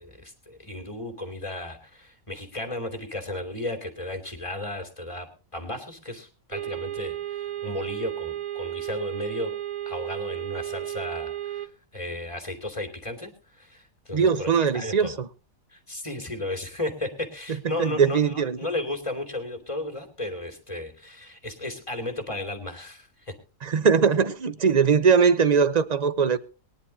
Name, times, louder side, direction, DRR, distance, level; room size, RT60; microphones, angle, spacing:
voice 1, 0.0-5.3 5.5-9.5 9.9-15.2 15.7-23.3, left 1 dB, 20° left, 3.0 m, -34 dB
sound 1, 6.5-11.7, right 13 dB, 70° right, 1.6 m, -33 dB
voice 2, 14.1-15.3 17.6-18.6 23.6-26.4, right 6 dB, 35° right, 0.8 m, -21 dB
23.0 x 11.0 x 2.8 m
omnidirectional pair, 1.5 m